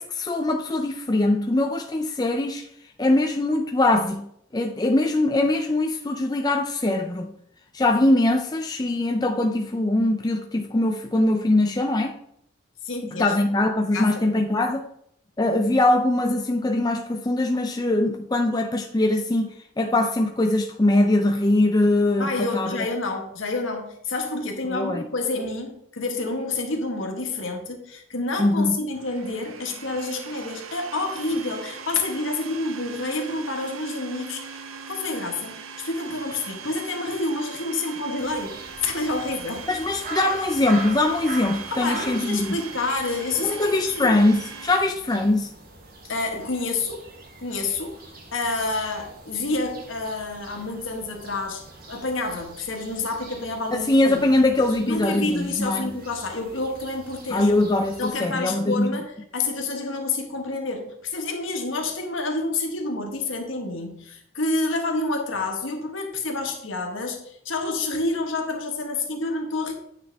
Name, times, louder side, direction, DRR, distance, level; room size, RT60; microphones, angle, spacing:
voice 1, 0.0-2.7 3.0-4.3 4.5-7.3 7.7-12.1 13.1-14.9 15.4-22.9 24.7-25.0 28.4-28.8 39.7-42.6 43.4-45.5 53.7-55.9 57.3-58.9, left 2 dB, 20° left, 0.4 m, -22 dB
voice 2, 12.8-13.3 13.9-14.3 22.2-38.6 38.8-39.7 41.7-44.1 46.1-47.0 47.4-48.0 48.3-54.2 54.9-57.5 58.0-69.7, left 3 dB, 70° left, 1.6 m, -28 dB
Domestic sounds home sounds, 28.9-44.8, right 6 dB, 85° right, 0.7 m, -40 dB
sound 1, 38.2-58.1, right 3 dB, 45° right, 1.3 m, -43 dB
9.2 x 6.2 x 3.5 m
head